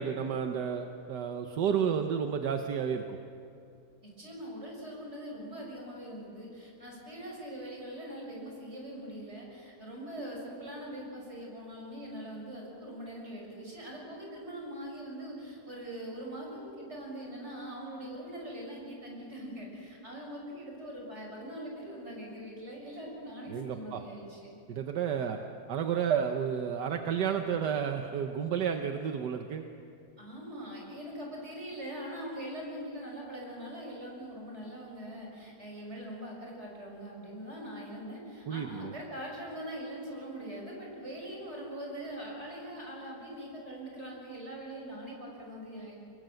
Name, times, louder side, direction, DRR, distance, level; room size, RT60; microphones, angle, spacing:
voice 1, 0.0-3.2 23.5-24.0 24.7-25.4 25.7-29.6 38.5-38.9, right 7 dB, 75° right, 5 dB, 1.6 m, -31 dB
voice 2, 4.0-24.5 25.2-25.3 30.2-45.9, right 1 dB, 40° right, -1 dB, 6.6 m, -42 dB
24.5 x 22.0 x 7.8 m, 2.5 s
omnidirectional pair, 1.8 m